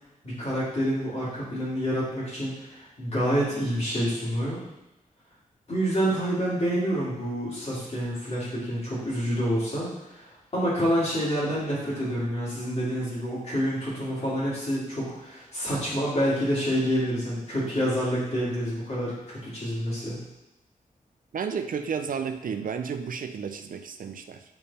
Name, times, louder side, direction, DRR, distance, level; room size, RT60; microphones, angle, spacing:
voice 1, 0.2-4.6 5.7-20.2, equal, 45° left, -8 dB, 2.6 m, -28 dB
voice 2, 21.3-24.4, right 6 dB, 65° right, 8 dB, 0.5 m, -32 dB
8.8 x 3.6 x 4.2 m, 0.96 s
wide cardioid pair, 165°, 15 cm